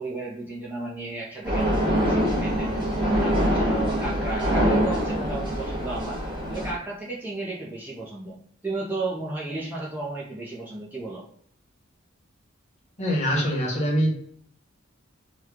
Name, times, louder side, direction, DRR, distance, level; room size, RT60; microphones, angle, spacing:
voice 1, 0.0-1.8 2.1-2.7 3.2-6.2 6.5-8.4 8.6-11.2, right 2 dB, 10° right, -5 dB, 0.6 m, -33 dB
sound 1, 1.4-6.7, equal, 25° right, 1.2 m, -24 dB
voice 2, 13.0-14.2, equal, 35° left, -2 dB, 1.0 m, -23 dB
3.1 x 2.3 x 3.5 m, 0.63 s
head